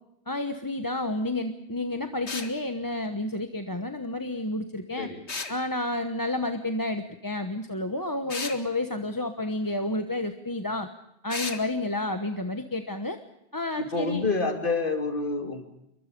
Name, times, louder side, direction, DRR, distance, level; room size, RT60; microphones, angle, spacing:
voice 1, 0.3-5.1 5.5-10.9 11.2-13.2 13.5-14.3, left 2 dB, 20° left, 6 dB, 1.1 m, -30 dB
sound 1, 2.3-2.5 5.3-5.6 8.3-8.6 11.3-11.6, left 4 dB, 70° left, 2.2 m, -33 dB
voice 2, 13.8-15.6, left 3 dB, 45° left, 4 dB, 3.2 m, -28 dB
28.0 x 23.5 x 5.3 m, 0.83 s
omnidirectional pair, 1.2 m